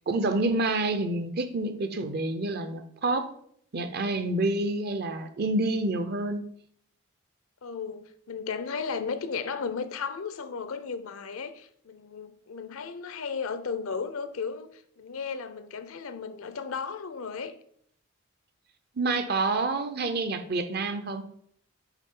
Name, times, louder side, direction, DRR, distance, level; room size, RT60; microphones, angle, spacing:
voice 1, 0.1-3.3 3.7-6.4 19.0-21.2, right 2 dB, 45° right, 0.6 m, -28 dB
voice 2, 7.6-17.6, left 5 dB, 70° left, 0.5 m, -35 dB
8.2 x 3.5 x 3.7 m
head